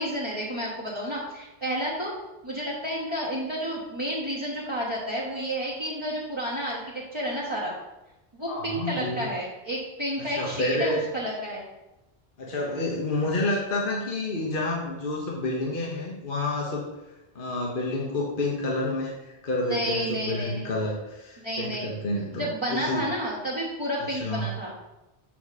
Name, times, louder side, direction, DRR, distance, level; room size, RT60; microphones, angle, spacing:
voice 1, 0.0-2.1 2.4-7.7 8.3-11.7 19.6-20.7 21.4-21.9 22.4-24.7, equal, 30° right, -8 dB, 1.4 m, -31 dB
voice 2, 8.5-9.2 10.2-11.0 12.4-16.9 17.3-23.1 24.0-24.5, left 2 dB, 55° left, -2 dB, 1.3 m, -29 dB
7.5 x 5.9 x 4.2 m, 0.96 s
omnidirectional pair, 1.0 m